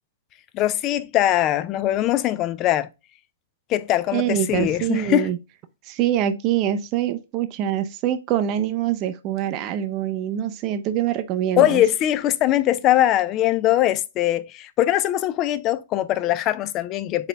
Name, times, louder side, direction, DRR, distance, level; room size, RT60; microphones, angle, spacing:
voice 1, 0.5-2.9 3.7-5.3 11.6-17.3, left 13 dB, 30° left, 0.4 m, -21 dB
voice 2, 4.1-5.4 5.9-11.8, right 11 dB, 35° right, 0.5 m, -24 dB
4.1 x 4.0 x 3.2 m
hypercardioid pair, 130°, 0 cm